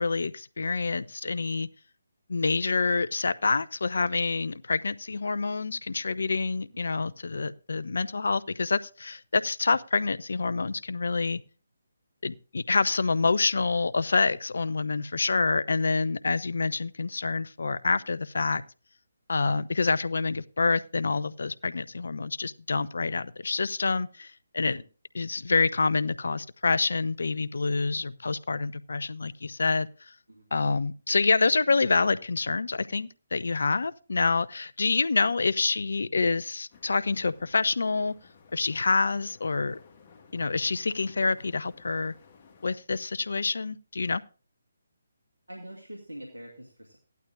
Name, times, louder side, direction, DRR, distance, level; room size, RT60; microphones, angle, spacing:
voice 1, 0.0-1.7 2.3-11.4 12.2-18.6 19.3-24.8 25.1-29.9 30.5-38.1 38.5-39.8 40.3-42.1 42.6-44.2, left 4 dB, 65° left, 0.6 m, -27 dB
sound 1, 36.7-42.8, left 5 dB, 35° left, 1.7 m, -56 dB
voice 2, 45.5-47.0, right 1 dB, 85° right, 2.2 m, -44 dB
16.0 x 12.0 x 2.5 m
figure-of-eight pair, 145°, 0 cm